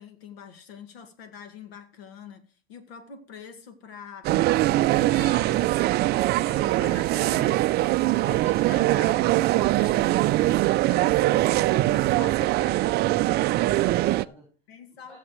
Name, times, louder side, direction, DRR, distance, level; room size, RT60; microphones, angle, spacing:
voice 1, 0.0-5.9 6.4-7.7 8.2-12.8 14.7-15.2, left 6 dB, 80° left, 2.0 m, -44 dB
sound 1, 4.2-14.2, right 17 dB, 35° right, 0.4 m, -22 dB
voice 2, 12.3-14.5 15.0-15.2, equal, 5° left, 4.2 m, -50 dB
16.5 x 7.1 x 3.1 m
hypercardioid pair, 105°, 31 cm